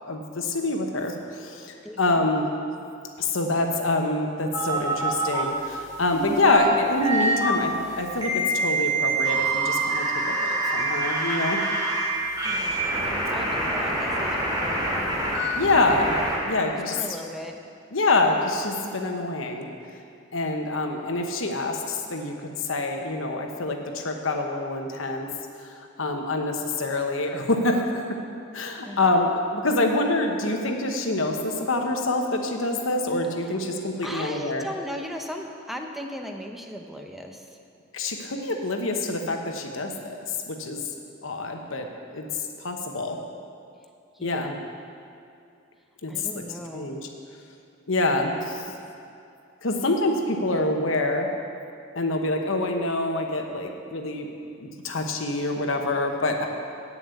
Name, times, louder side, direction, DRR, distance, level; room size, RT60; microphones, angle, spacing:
voice 1, 0.1-2.5 3.2-11.6 15.6-16.2 16.4-17.0 17.9-19.7 20.3-25.3 25.6-28.2 28.5-34.7 37.9-40.8 41.2-41.9 42.1-43.2 44.2-44.5 46.0-47.1 47.9-48.7 49.6-51.3 51.9-54.3 54.6-56.5, left 2 dB, 75° left, 3 dB, 1.1 m, -26 dB
voice 2, 1.8-2.3 12.4-12.8 13.3-15.2 16.9-17.6 28.8-29.3 34.0-37.5 44.1-44.6 46.1-46.9, equal, ahead, 2 dB, 0.7 m, -37 dB
sound 1, 4.5-5.4 6.1-7.5 8.2-12.1 12.4-16.4, right 2 dB, 20° right, 2.7 m, -26 dB
8.5 x 7.1 x 8.3 m, 2.5 s
head